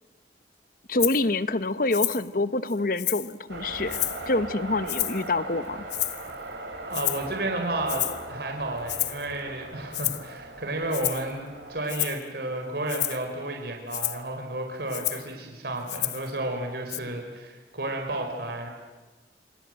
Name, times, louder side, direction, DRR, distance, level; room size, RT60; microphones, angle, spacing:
voice 1, 0.9-4.0 4.3-5.8, left 2 dB, 50° left, 13 dB, 1.1 m, -26 dB
Rattle (instrument), 1.0-1.2 1.9-2.3 2.7-3.3 3.9-4.3 4.9-5.3 5.9-6.3 6.9-7.3 7.9-8.2 8.9-9.3 9.9-10.3 10.9-11.3 11.9-12.2 12.9-13.2 13.9-14.2 14.9-15.3 15.9-16.3 16.9-17.0, left 15 dB, 80° left, 1.2 m, -30 dB
sound 1, 3.5-11.8, right 2 dB, 90° right, 6.8 m, -39 dB
voice 2, 6.9-18.7, right 1 dB, 65° right, 2 dB, 4.5 m, -32 dB
27.0 x 26.5 x 7.8 m, 1.3 s
head